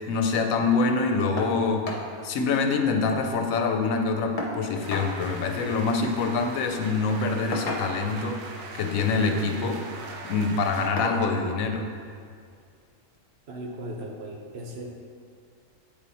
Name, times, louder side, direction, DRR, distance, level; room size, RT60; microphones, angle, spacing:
voice 1, 0.1-1.9 2.2-8.4 8.7-9.8 10.3-11.9, left 4 dB, 85° left, 4 dB, 1.0 m, -25 dB
sound 1, 1.4-1.6 1.8-2.1 2.4-2.5 2.8-3.5 4.4-5.1 6.4-6.6 7.5-8.2 9.2-9.5 10.0-10.2 11.0-11.3 12.5-12.6 13.1-13.2, left 2 dB, 45° left, 0.8 m, -33 dB
sound 2, 4.8-10.9, right 4 dB, 85° right, 1.0 m, -41 dB
voice 2, 13.5-15.0, right 1 dB, 60° right, -1 dB, 0.8 m, -37 dB
8.1 x 2.9 x 4.1 m, 2.1 s
omnidirectional pair, 1.4 m